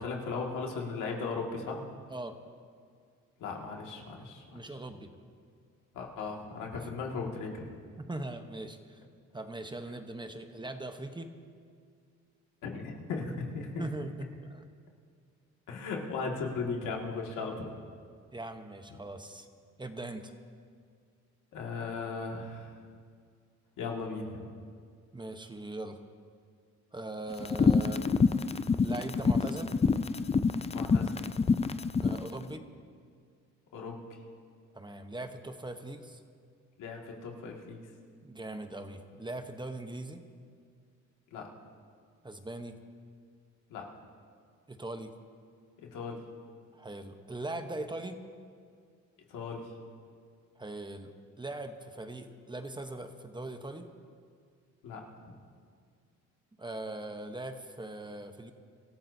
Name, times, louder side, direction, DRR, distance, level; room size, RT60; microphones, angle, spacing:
voice 1, 0.0-1.8 3.4-4.8 5.9-7.7 12.6-13.9 15.7-17.7 21.5-22.8 23.8-24.5 30.7-31.1 33.7-34.0 36.8-37.8 41.3-41.5 43.7-43.9 45.8-46.2 49.3-49.7 54.8-55.1, left 4 dB, 85° left, 0 dB, 2.1 m, -37 dB
voice 2, 4.5-5.1 8.1-9.0 9.3-11.3 13.8-14.1 14.5-14.6 18.3-19.5 19.8-20.3 25.1-26.0 26.9-28.0 28.8-29.7 32.0-32.6 34.7-36.2 38.2-40.2 42.2-42.8 44.7-45.1 46.7-48.2 50.6-51.1 51.4-53.9 56.6-58.5, right 2 dB, 15° right, 7 dB, 1.0 m, -40 dB
sound 1, 27.4-32.2, left 5 dB, 20° left, 0.5 m, -26 dB
25.0 x 14.0 x 2.8 m, 2.1 s
cardioid pair, 90°, 30 cm